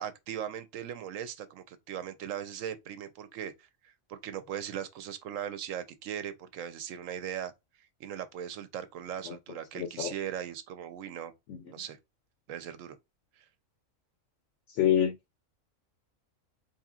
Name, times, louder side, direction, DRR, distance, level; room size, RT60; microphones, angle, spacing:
voice 1, 0.0-7.5 8.0-11.3 11.7-12.0 12.5-13.0, right 9 dB, 75° right, 1.0 m, -39 dB
voice 2, 9.8-10.1 11.5-11.6 14.8-15.2, left 10 dB, 70° left, 0.9 m, -26 dB
4.6 x 2.8 x 2.4 m
omnidirectional pair, 1.4 m